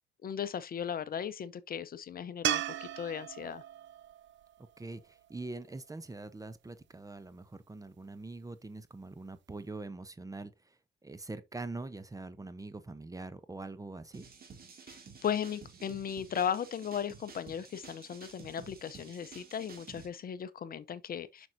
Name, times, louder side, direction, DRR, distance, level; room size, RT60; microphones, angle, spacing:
voice 1, 0.2-3.6 14.9-21.5, left 8 dB, 50° left, 0.7 m, -37 dB
sound 1, 2.4-5.7 8.9-9.0, right 13 dB, 70° right, 0.5 m, -37 dB
voice 2, 4.8-14.2, right 3 dB, 15° right, 0.8 m, -44 dB
sound 2, 14.1-20.1, right 5 dB, 50° right, 2.6 m, -52 dB
7.6 x 6.2 x 2.7 m
cardioid pair, 90°, 20 cm